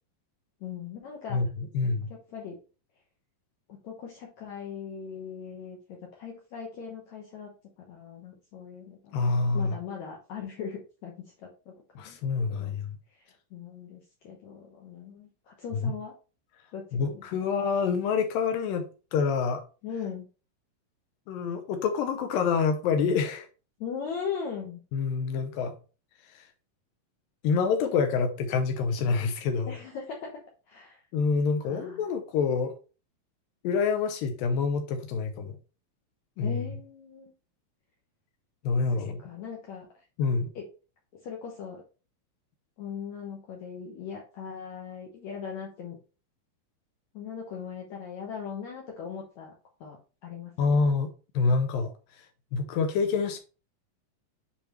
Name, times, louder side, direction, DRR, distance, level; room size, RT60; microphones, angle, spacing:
voice 1, 0.6-1.4 2.1-2.6 3.7-9.2 9.5-11.7 12.1-12.2 12.5-12.7 13.1-16.1 16.7-17.2 19.8-20.3 23.8-24.8 29.7-31.0 31.6-32.1 36.4-37.3 39.0-39.9 40.6-40.7 41.2-41.8 42.8-46.0 47.1-49.5 49.8-50.7, left 7 dB, 65° left, 2.0 m, -39 dB
voice 2, 1.3-2.1 9.1-9.8 12.0-13.0 15.8-15.9 16.9-18.9 19.1-19.6 21.3-23.5 24.9-25.8 26.3-26.5 27.4-29.8 31.1-32.7 33.6-35.6 36.4-36.6 38.6-39.2 40.2-40.5 50.6-52.3 52.5-53.4, left 5 dB, 80° left, 2.4 m, -27 dB
7.1 x 4.8 x 3.0 m
omnidirectional pair, 4.0 m